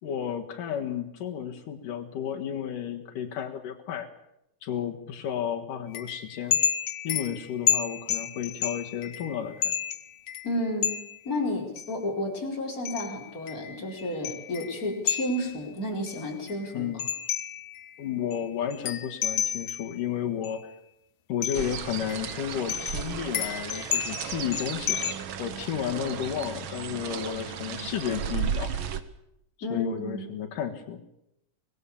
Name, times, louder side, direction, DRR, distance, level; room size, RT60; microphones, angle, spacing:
voice 1, 0.0-4.1 4.6-6.6 7.0-9.7 16.7-17.1 18.0-20.7 21.3-25.0 25.4-28.7 29.7-31.0, left 9 dB, 80° left, 3 dB, 3.3 m, -32 dB
copper-chimes, 5.9-11.2 11.8-11.9 12.8-15.6 16.1-17.9 18.3-18.4 18.7-20.0 20.4-20.5 21.4-21.8 22.1-25.1, left 9 dB, 65° left, 2.4 m, -31 dB
voice 2, 10.4-10.9 11.2-17.0 29.6-30.3, left 1 dB, 25° left, -1 dB, 5.0 m, -31 dB
sound 1, 21.5-29.0, right 8 dB, 60° right, 1.4 m, -34 dB
25.5 x 19.5 x 7.2 m, 0.83 s
omnidirectional pair, 3.7 m